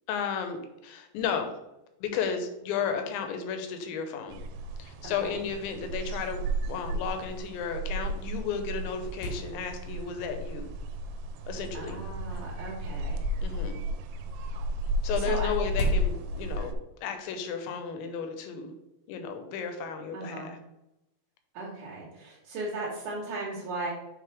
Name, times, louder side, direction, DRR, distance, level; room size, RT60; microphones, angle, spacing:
voice 1, 0.1-1.5 2.0-4.4 4.8-10.7 11.5-12.0 13.4-13.8 15.0-16.7 17.0-18.7 19.1-20.6, left 6 dB, 85° left, 6 dB, 3.0 m, -33 dB
sound 1, 4.3-16.7, right 1 dB, 85° right, 2.7 m, -33 dB
voice 2, 5.0-5.4 11.7-13.2 15.2-15.5 20.1-20.5 21.5-23.9, right 2 dB, 65° right, -6 dB, 2.2 m, -37 dB
sound 2, 6.1-6.2 6.4-6.5 7.1-7.2 7.9-8.0 8.3-10.1 10.8-11.3 12.2-13.6 14.8-16.6, equal, 65° left, 2.7 m, -40 dB
6.4 x 4.7 x 3.4 m, 0.90 s
omnidirectional pair, 5.1 m